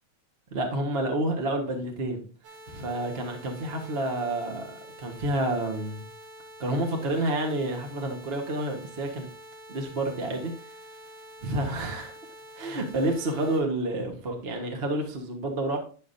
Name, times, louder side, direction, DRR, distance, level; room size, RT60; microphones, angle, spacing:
voice 1, 0.5-2.3 2.7-6.1 6.6-9.3 9.7-10.5 11.4-12.1 12.5-15.8, right 1 dB, 55° right, 0.6 m, -29 dB
sound 1, 2.4-13.6, equal, 85° right, 3.6 m, -47 dB
10.5 x 6.2 x 2.7 m
omnidirectional pair, 3.5 m